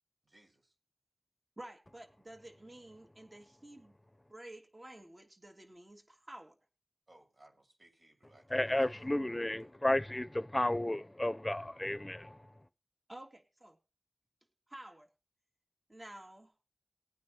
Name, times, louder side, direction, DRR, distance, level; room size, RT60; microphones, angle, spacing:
voice 1, 0.2-0.7 7.1-9.1, right 1 dB, 80° right, 6.4 m, -64 dB
voice 2, 1.6-4.0 4.3-6.6 13.1-13.7 14.7-15.1 15.9-16.5, right 1 dB, 45° right, 2.9 m, -51 dB
voice 3, 8.5-12.4, left 1 dB, 30° left, 0.6 m, -32 dB
21.0 x 9.5 x 3.2 m
wide cardioid pair, 50°, 0 cm